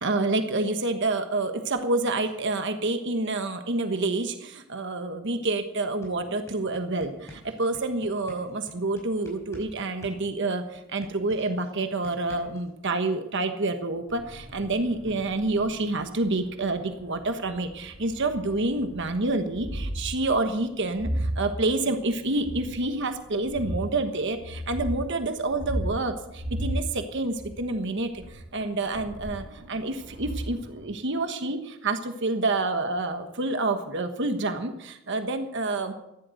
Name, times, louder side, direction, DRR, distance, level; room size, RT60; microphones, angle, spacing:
voice 1, 0.0-35.9, right 2 dB, 55° right, 7 dB, 1.3 m, -28 dB
sound 1, 5.5-5.6 5.9-9.7 10.0-12.7, equal, 15° left, 5.0 m, -48 dB
sound 2, 14.1-30.9, equal, 75° right, 2.8 m, -36 dB
14.5 x 11.0 x 7.8 m, 0.85 s
head